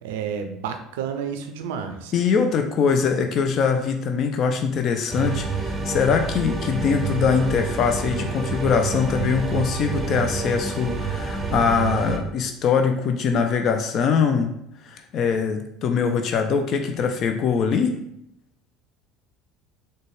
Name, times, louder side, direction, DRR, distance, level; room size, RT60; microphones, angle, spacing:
voice 1, 0.0-2.1, right 7 dB, 75° right, 6 dB, 0.4 m, -30 dB
voice 2, 2.1-14.5 14.8-18.0, left 6 dB, 50° left, 5 dB, 0.3 m, -22 dB
sound 1, 5.1-12.2, right 4 dB, 15° right, 0.7 m, -28 dB
4.0 x 2.2 x 3.1 m, 0.77 s
hypercardioid pair, 70°, 0 cm